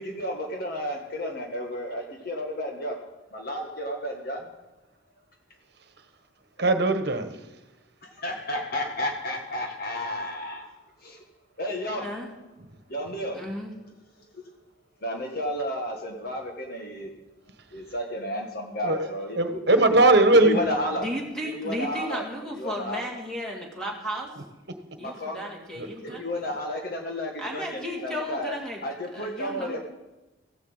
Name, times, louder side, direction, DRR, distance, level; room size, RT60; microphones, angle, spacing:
voice 1, 0.0-3.0 3.3-4.4 8.0-10.7 11.0-11.2 11.6-12.1 12.9-13.4 14.3-14.4 15.0-17.1 17.7-19.8 20.3-21.0 21.5-22.2 22.6-23.0 25.0-25.5 26.0-28.5 28.8-29.8, left 1 dB, 50° left, 2 dB, 1.5 m, -32 dB
voice 2, 6.6-7.3 18.8-19.0 19.3-20.6 25.8-25.9, right 2 dB, 55° right, 8 dB, 1.4 m, -19 dB
voice 3, 12.0-12.3 13.3-13.7 20.9-24.3 25.0-26.2 27.4-28.8 29.1-29.8, equal, 5° left, -1 dB, 2.6 m, -34 dB
15.5 x 7.6 x 8.0 m, 1.1 s
head